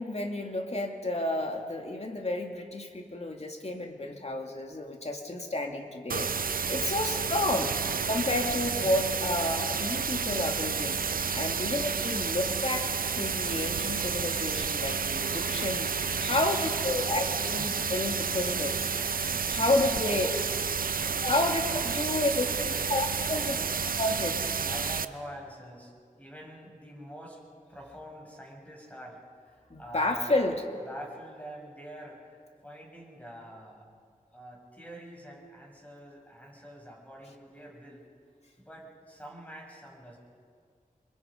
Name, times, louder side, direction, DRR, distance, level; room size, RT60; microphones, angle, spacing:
voice 1, 0.0-6.3 6.7-7.7 8.1-11.0 11.3-18.9 19.5-20.4 21.2-23.6 24.0-24.4 29.7-30.6, left 2 dB, 50° left, 2 dB, 2.6 m, -31 dB
sound 1, 6.1-25.0, right 6 dB, 80° right, 0.6 m, -30 dB
voice 2, 20.2-20.6 22.6-23.9 24.6-27.4 27.7-30.6 30.9-33.9 34.3-38.1 38.6-40.2, equal, 10° left, -2 dB, 7.5 m, -47 dB
28.0 x 23.0 x 5.3 m, 2.1 s
wide cardioid pair, 60°, 14 cm